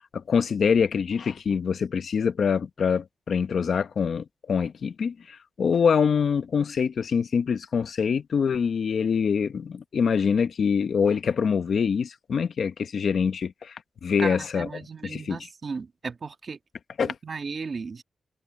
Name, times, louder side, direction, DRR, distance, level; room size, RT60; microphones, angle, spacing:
voice 1, 0.1-15.4 17.0-17.1, left 6 dB, 60° left, 0.9 m, -25 dB
voice 2, 14.2-16.6 17.0-18.0, right 4 dB, 45° right, 1.7 m, -35 dB
wide cardioid pair, 120°, 0 cm